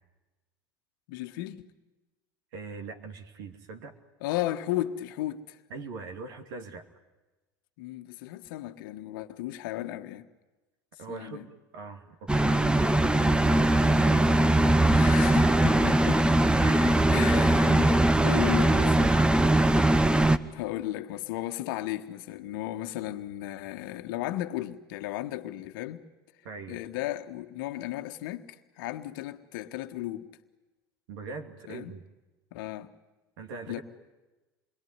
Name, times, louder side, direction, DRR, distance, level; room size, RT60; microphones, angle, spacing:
voice 1, 1.1-1.6 4.2-5.6 7.8-10.3 11.1-11.5 14.9-16.2 17.1-18.0 18.2-19.3 20.5-26.0 26.7-30.3 31.7-31.9 32.5-32.9 33.7-33.8, left 14 dB, 65° left, 1.5 m, -35 dB
voice 2, 2.5-4.0 5.7-6.9 11.0-14.3 16.6-19.6 26.4-26.8 31.1-32.0 33.4-33.8, right 4 dB, 65° right, 2.7 m, -41 dB
sound 1, 12.3-20.4, right 1 dB, 10° right, 1.2 m, -21 dB
28.0 x 22.0 x 9.7 m
hypercardioid pair, 75°, 12 cm